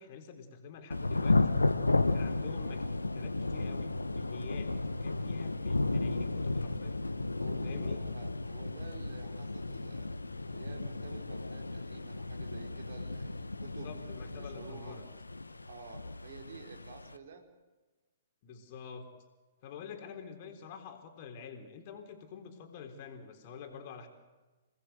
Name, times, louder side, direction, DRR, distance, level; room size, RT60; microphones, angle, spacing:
voice 1, 0.0-1.4 2.1-2.9 3.1-7.0 7.6-8.0 13.6-15.0 18.4-19.1 19.6-24.1, left 6 dB, 40° left, 6 dB, 3.7 m, -47 dB
Thunder / Rain, 0.9-17.2, left 2 dB, 85° left, 1.1 m, -33 dB
voice 2, 7.4-10.1 10.5-13.9 14.4-15.0 15.7-17.4, right 5 dB, 55° right, 4 dB, 4.6 m, -51 dB
28.0 x 19.0 x 8.0 m, 1.2 s
figure-of-eight pair, 120°, 0 cm